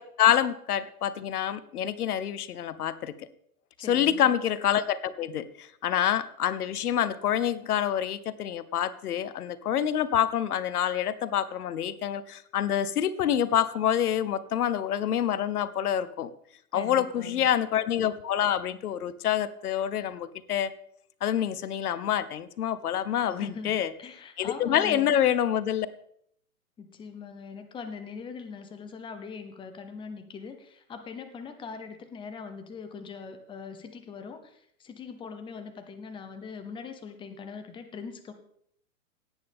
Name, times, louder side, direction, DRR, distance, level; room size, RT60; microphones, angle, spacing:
voice 1, 0.0-3.1 3.9-16.3 16.7-20.7 21.2-23.9 24.4-25.9, left 10 dB, 75° left, 16 dB, 0.9 m, -27 dB
voice 2, 3.8-4.3 16.7-17.5 23.3-25.2 26.8-38.3, left 5 dB, 10° left, 8 dB, 0.9 m, -42 dB
17.5 x 8.9 x 3.5 m, 0.69 s
hypercardioid pair, 130°, 45 cm